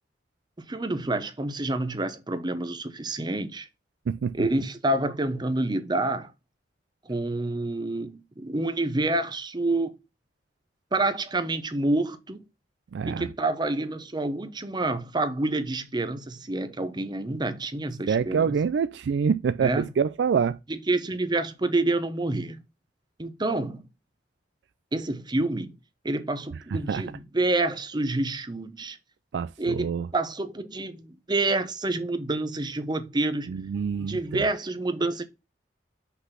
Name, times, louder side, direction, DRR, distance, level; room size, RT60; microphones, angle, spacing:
voice 1, 0.7-3.7 4.3-6.3 7.1-9.9 10.9-12.4 13.1-18.5 19.6-19.9 20.7-22.6 23.2-23.8 24.9-25.7 26.0-29.0 29.6-33.6 34.0-35.2, right 2 dB, 25° right, 0.8 m, -28 dB
voice 2, 4.1-4.5 12.9-13.3 18.1-20.6 26.7-27.0 29.3-30.1 33.5-34.4, right 6 dB, 75° right, 0.3 m, -26 dB
5.6 x 4.0 x 5.6 m
head